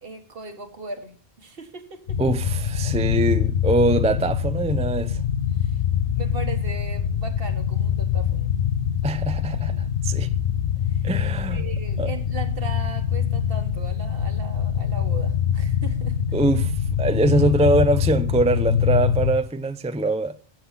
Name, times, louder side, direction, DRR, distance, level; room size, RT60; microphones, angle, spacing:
voice 1, 0.0-2.2 5.6-5.8 6.1-8.5 9.6-9.9 10.8-11.1 11.5-16.2, right 4 dB, 65° right, 1.6 m, -38 dB
sound 1, 2.1-19.3, left 8 dB, 85° left, 1.2 m, -24 dB
voice 2, 2.2-5.2 9.0-9.7 10.0-10.3 11.0-11.7 12.0-12.1 16.3-16.7 17.0-20.4, right 2 dB, 10° right, 0.4 m, -22 dB
15.0 x 7.9 x 5.6 m
omnidirectional pair, 1.1 m